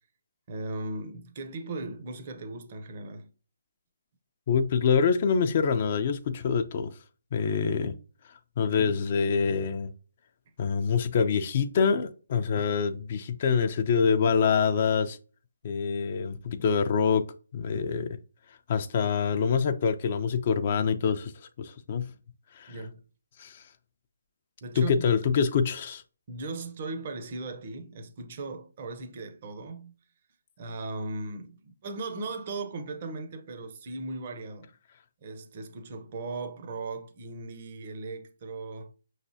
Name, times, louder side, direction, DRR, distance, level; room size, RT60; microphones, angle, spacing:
voice 1, 0.5-3.3 22.7-23.0 24.6-25.0 26.3-29.9 30.6-34.7 35.2-38.9, right 3 dB, 40° right, 0.7 m, -38 dB
voice 2, 4.5-6.9 7.3-7.9 8.6-9.9 10.6-15.2 15.6-17.2 17.5-18.2 18.7-21.3 21.6-22.1 22.5-22.7 23.4-23.6 24.8-26.0, left 6 dB, 40° left, 0.4 m, -25 dB
5.3 x 3.2 x 2.7 m
figure-of-eight pair, 150°, 0 cm